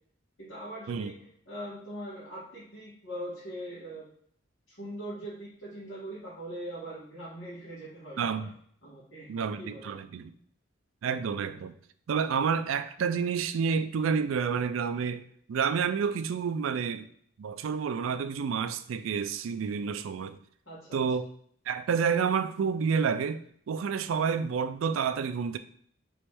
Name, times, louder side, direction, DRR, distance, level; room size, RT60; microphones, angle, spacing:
voice 1, 0.4-4.0 4.7-8.5 8.8-9.3 9.6-9.9 20.6-21.0, right 1 dB, 75° left, 1.5 m, -41 dB
voice 2, 8.2-8.5 9.3-10.3 11.0-11.7 12.1-17.1 17.4-20.4 20.9-21.3 21.7-25.6, right 6 dB, 90° right, 0.4 m, -29 dB
3.4 x 3.1 x 4.4 m
head